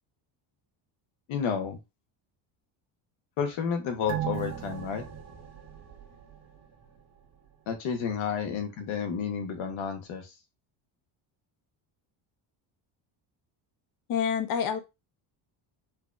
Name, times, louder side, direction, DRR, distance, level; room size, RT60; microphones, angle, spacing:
voice 1, 1.3-1.8 3.4-5.0 7.7-10.3, left 7 dB, 80° left, 6 dB, 1.2 m, -31 dB
sound 1, 4.1-7.0 7.3-7.4, right 10 dB, 35° right, 1.0 m, -37 dB
voice 2, 14.1-14.8, left 7 dB, 45° left, 7 dB, 0.7 m, -27 dB
4.6 x 2.7 x 2.4 m, 0.24 s
cardioid pair, 150°, 48 cm